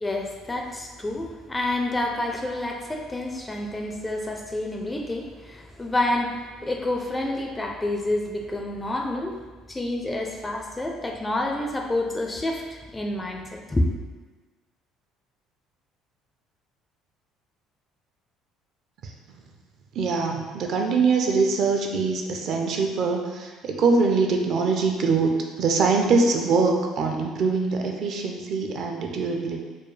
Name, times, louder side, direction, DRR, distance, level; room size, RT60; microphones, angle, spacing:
voice 1, 0.0-9.4 9.7-13.9, left 1 dB, 15° left, 2 dB, 0.4 m, -28 dB
voice 2, 20.0-25.3 25.6-29.6, right 4 dB, 55° right, 2 dB, 0.5 m, -23 dB
4.4 x 2.3 x 3.2 m, 1.3 s
cardioid pair, 125°, 0 cm